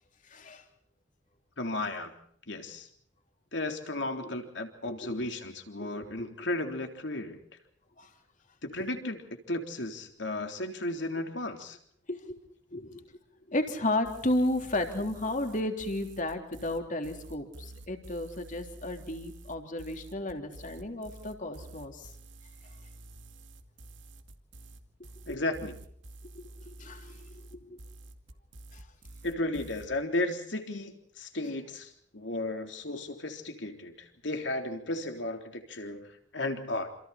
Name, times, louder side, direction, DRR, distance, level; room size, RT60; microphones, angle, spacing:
voice 1, 0.3-0.6 4.2-4.3 4.8-5.3 5.8-6.3 8.0-8.1 8.8-8.9 12.1-12.4 12.7-13.2 13.5-22.1 25.3-25.4 26.3-27.8 28.7-28.8, left 1 dB, 45° left, 5 dB, 3.5 m, -33 dB
voice 2, 1.6-2.1 2.5-2.9 3.5-7.4 8.6-11.8 25.3-25.7 29.2-36.9, left 2 dB, 75° left, 5 dB, 3.7 m, -34 dB
sound 1, 14.0-29.9, right 2 dB, 90° right, 2.4 m, -49 dB
27.5 x 27.5 x 4.3 m, 0.64 s
head